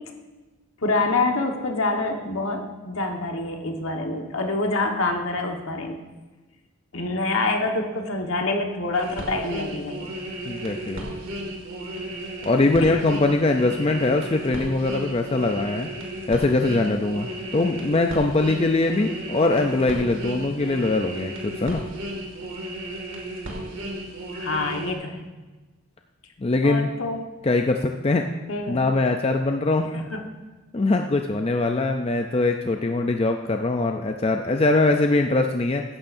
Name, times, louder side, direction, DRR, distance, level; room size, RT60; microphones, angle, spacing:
voice 1, 0.8-6.0 6.9-10.1 12.8-13.0 24.3-25.2 26.6-27.2 28.5-28.8 29.9-30.2, left 2 dB, 65° left, 3 dB, 1.4 m, -26 dB
sound 1, 8.9-24.9, right 1 dB, 60° right, 2.2 m, -34 dB
voice 2, 10.5-11.1 12.4-15.9 16.3-21.8 26.4-26.9 27.4-28.2 28.7-29.9 30.7-35.8, left 2 dB, 25° left, 4 dB, 0.4 m, -22 dB
16.0 x 11.0 x 2.6 m, 1.2 s
head